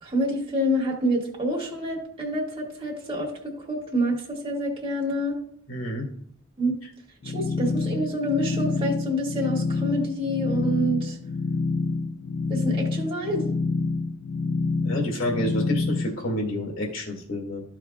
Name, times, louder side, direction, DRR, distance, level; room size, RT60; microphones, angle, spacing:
voice 1, 0.0-5.4 6.6-6.8 7.2-11.2 12.5-13.5, equal, 25° right, -3 dB, 1.9 m, -27 dB
voice 2, 5.7-6.1 14.8-17.6, left 1 dB, 65° left, 0 dB, 2.0 m, -29 dB
sound 1, 7.2-16.1, left 3 dB, 45° left, 0.4 m, -27 dB
14.0 x 4.8 x 2.3 m, 0.64 s
head